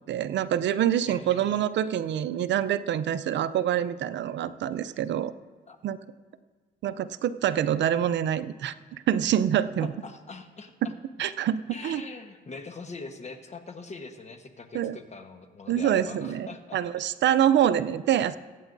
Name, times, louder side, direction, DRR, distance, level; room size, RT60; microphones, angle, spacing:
voice 1, 0.0-5.3 5.8-6.0 6.8-9.9 10.8-10.9 11.2-12.0 14.7-15.0 15.7-18.4, right 10 dB, 65° right, 13 dB, 0.5 m, -26 dB
voice 2, 1.1-1.6 5.7-5.8 9.8-11.0 11.7-17.2, left 3 dB, 35° left, 6 dB, 1.2 m, -42 dB
23.5 x 9.0 x 2.6 m, 1.4 s
cardioid pair, 90°, 20 cm